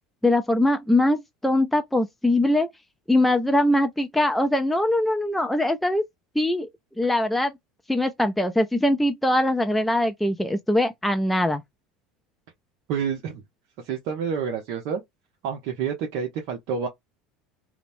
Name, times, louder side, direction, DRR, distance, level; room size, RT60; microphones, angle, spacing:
voice 1, 0.2-2.7 3.1-6.1 6.4-6.7 7.0-7.5 7.9-11.6, left 1 dB, 5° left, 0.4 m, -22 dB
voice 2, 12.9-13.4 13.8-15.0 15.4-16.9, right 7 dB, 65° right, 0.7 m, -28 dB
3.0 x 2.0 x 2.6 m
supercardioid pair, 95°, 2 cm